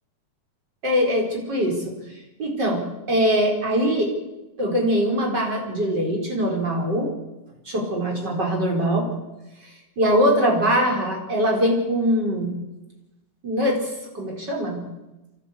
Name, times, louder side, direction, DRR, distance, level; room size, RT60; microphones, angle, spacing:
voice 1, 0.8-1.9 2.4-4.1 4.6-7.1 7.6-9.1 10.0-12.5 13.4-13.9 14.1-14.9, equal, 30° right, 0 dB, 5.1 m, -22 dB
24.0 x 14.5 x 8.3 m, 1.0 s
omnidirectional pair, 3.7 m